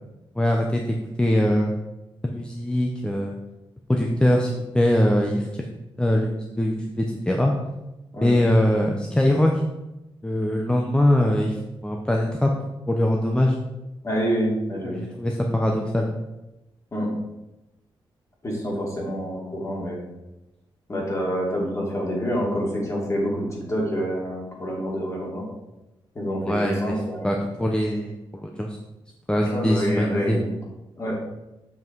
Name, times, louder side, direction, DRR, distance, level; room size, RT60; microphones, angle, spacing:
voice 1, 0.4-0.8 1.2-1.7 2.2-3.3 3.9-5.5 6.0-7.5 8.2-9.6 10.2-11.6 11.8-12.5 12.9-13.6 14.8-16.1 26.5-27.0 27.2-28.8 29.3-30.4, left 1 dB, 10° left, 1 dB, 0.8 m, -22 dB
voice 2, 14.0-15.0 16.9-17.1 18.4-20.0 20.9-25.4 26.1-27.3 29.4-30.6 31.0-31.2, equal, 35° left, -3 dB, 3.0 m, -27 dB
7.3 x 5.9 x 4.7 m, 0.98 s
cardioid pair, 100°, 9 cm